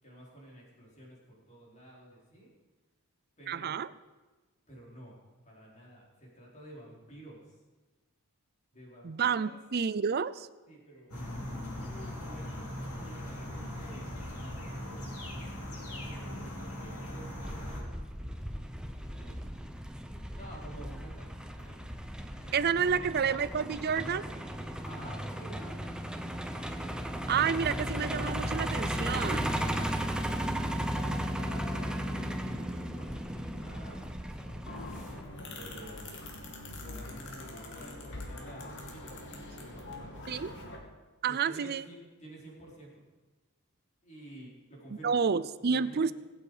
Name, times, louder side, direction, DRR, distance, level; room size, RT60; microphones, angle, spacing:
voice 1, 0.0-2.5 3.4-3.7 4.7-7.6 8.7-9.6 10.7-11.1 11.6-15.0 15.8-19.4 20.3-21.3 21.6-21.8 22.3-23.0 24.8-25.8 29.5-35.1 35.5-36.3 36.8-39.2 39.6-40.5 41.3-43.0 44.0-45.2 45.6-46.1, right 1 dB, 30° left, -4 dB, 4.5 m, -51 dB
voice 2, 3.5-3.9 9.0-10.5 22.5-24.3 27.3-29.5 40.3-40.5 41.2-41.8 45.0-46.1, right 6 dB, 45° right, 15 dB, 0.5 m, -29 dB
sound 1, 11.1-17.8, left 1 dB, 90° left, 4.4 m, -40 dB
Truck, 17.4-35.2, equal, 5° right, 0.9 m, -35 dB
sound 2, 34.7-40.8, left 2 dB, 55° left, 2.4 m, -43 dB
25.0 x 8.5 x 5.0 m, 1.2 s
head